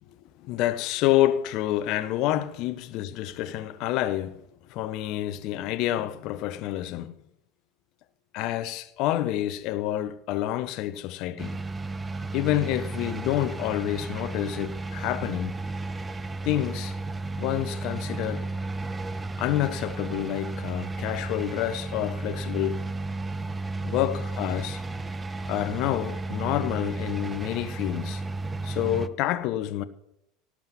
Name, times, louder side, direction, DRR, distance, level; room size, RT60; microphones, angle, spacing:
voice 1, 0.4-4.4 4.7-7.2 8.3-11.6 12.3-15.5 16.4-17.0 17.4-18.5 19.4-22.9 23.8-24.8 25.5-28.2 28.6-29.8, left 13 dB, 50° left, 0.9 m, -28 dB
sound 1, 11.4-29.1, right 2 dB, 15° right, 0.7 m, -33 dB
18.0 x 7.5 x 6.9 m
figure-of-eight pair, 75°, 0 cm